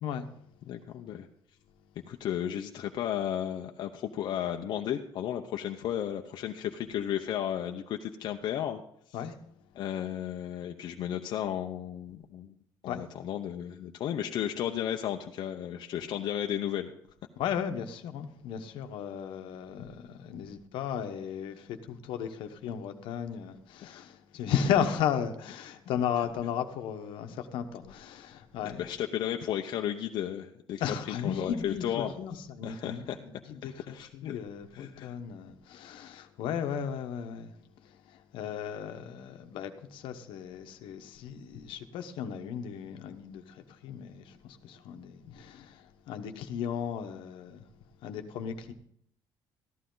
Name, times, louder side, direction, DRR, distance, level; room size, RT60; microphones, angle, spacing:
voice 1, 0.7-1.3 2.1-8.8 9.8-12.5 12.8-16.9 23.8-24.0 28.6-32.1 32.6-33.2 33.6-34.4 34.7-35.2, left 10 dB, 60° left, 0.7 m, -34 dB
voice 2, 17.4-28.8 30.8-47.7 48.0-48.7, left 8 dB, 80° left, 1.0 m, -35 dB
14.0 x 11.5 x 3.9 m
cardioid pair, 140°, 9 cm